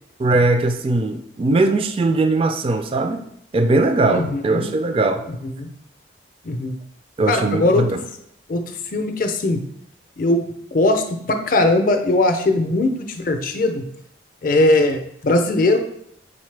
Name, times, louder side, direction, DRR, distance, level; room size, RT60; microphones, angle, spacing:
voice 1, 0.2-3.2 3.5-5.2 7.2-8.0, right 2 dB, 30° right, 7 dB, 0.3 m, -19 dB
voice 2, 4.1-4.7 5.3-5.7 6.4-6.8 7.3-7.9 8.5-9.6 10.2-13.8 14.4-15.8, left 2 dB, 50° left, 6 dB, 0.5 m, -20 dB
4.0 x 3.9 x 3.2 m, 0.74 s
head